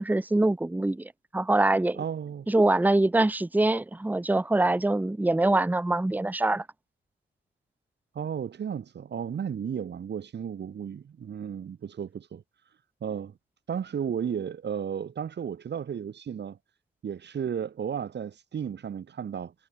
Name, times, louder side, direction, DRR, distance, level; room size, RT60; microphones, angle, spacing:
voice 1, 0.0-2.0 2.5-6.7, right 2 dB, 10° right, 1.0 m, -24 dB
voice 2, 2.0-2.5 8.1-12.4 13.0-13.3 13.7-16.6 17.0-19.5, right 8 dB, 55° right, 3.4 m, -34 dB
cardioid pair, 85°, 21 cm